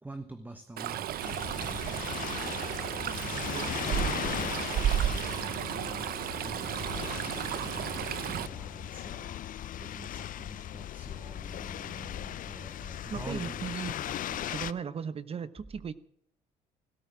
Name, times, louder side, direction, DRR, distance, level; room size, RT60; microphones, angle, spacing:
voice 1, 0.0-3.7 4.0-9.5 9.8-13.6, right 1 dB, 10° right, 1.2 m, -47 dB
Stream, 0.8-8.5, right 11 dB, 60° right, 0.9 m, -33 dB
sound 1, 1.2-14.7, left 12 dB, 55° left, 0.6 m, -38 dB
voice 2, 13.1-15.9, right 7 dB, 35° right, 0.9 m, -37 dB
17.0 x 13.0 x 6.1 m
cardioid pair, 110°, 17 cm